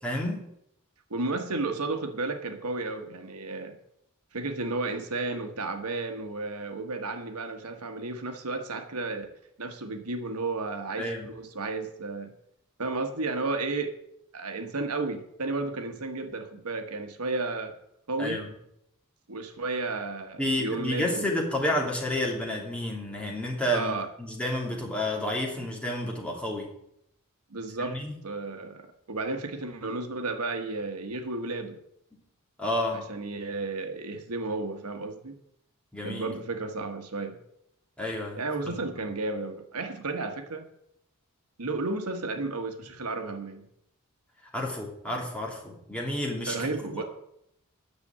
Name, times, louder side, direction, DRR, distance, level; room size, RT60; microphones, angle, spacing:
voice 1, 0.0-0.4 11.0-11.3 18.2-18.5 20.4-26.7 27.8-28.1 32.6-33.0 35.9-36.3 38.0-38.8 44.5-46.7 47.0-47.1, left 1 dB, 5° left, -2 dB, 3.0 m, -30 dB
voice 2, 1.1-3.8 4.3-9.3 9.6-12.3 12.8-14.0 14.3-17.7 18.1-18.4 19.3-21.3 23.7-24.1 27.5-28.0 28.2-31.8 32.9-35.3 36.0-37.4 38.3-40.7 41.6-43.7 46.5-47.0, right 3 dB, 80° right, 7 dB, 1.4 m, -33 dB
10.5 x 6.7 x 8.6 m, 0.76 s
head